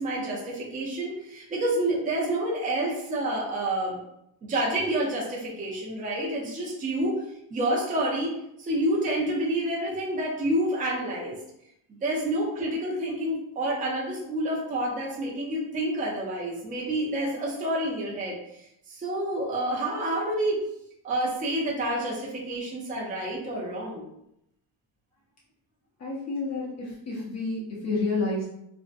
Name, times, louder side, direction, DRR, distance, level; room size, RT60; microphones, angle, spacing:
voice 1, 0.0-4.0 4.4-7.2 7.5-11.4 11.9-20.6 21.0-24.1, right 1 dB, 20° right, -3 dB, 0.5 m, -28 dB
voice 2, 26.0-28.4, left 3 dB, 40° left, -5 dB, 0.6 m, -30 dB
2.5 x 2.1 x 2.5 m, 0.79 s
cardioid pair, 145°, 40 cm